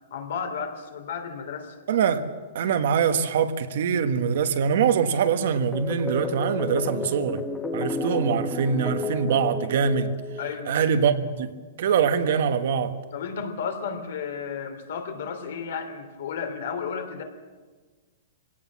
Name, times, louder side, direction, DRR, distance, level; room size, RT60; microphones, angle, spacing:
voice 1, 0.1-1.7 10.4-10.7 13.1-17.2, left 6 dB, 65° left, 3.1 m, -33 dB
voice 2, 1.9-2.3 2.5-7.4 7.7-10.1 10.7-11.5 11.8-12.9, right 7 dB, 60° right, 1.4 m, -23 dB
sound 1, 5.7-10.9, left 3 dB, 10° left, 1.4 m, -32 dB
23.5 x 17.5 x 7.5 m
hypercardioid pair, 170°, 0 cm